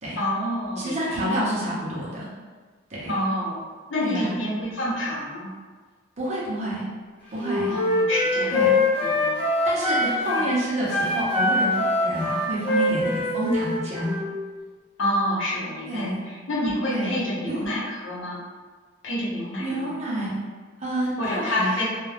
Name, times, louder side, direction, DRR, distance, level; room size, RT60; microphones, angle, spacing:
voice 1, 0.2-1.4 3.1-3.6 3.9-5.5 7.7-9.4 10.3-10.4 15.0-18.4 19.0-20.0 21.2-21.8, left 1 dB, 75° left, -7 dB, 0.9 m, -28 dB
voice 2, 0.8-2.3 2.9-3.2 4.0-4.3 6.2-6.8 7.3-7.7 8.5-8.7 9.6-14.1 15.9-16.2 16.9-17.7 19.6-20.4 20.8-21.8, right 1 dB, 35° right, -7 dB, 0.8 m, -28 dB
Wind instrument woodwind instrument, 7.4-10.5 10.8-14.3, left 2 dB, 5° left, 0.7 m, -23 dB
2.4 x 2.3 x 3.2 m, 1.5 s
head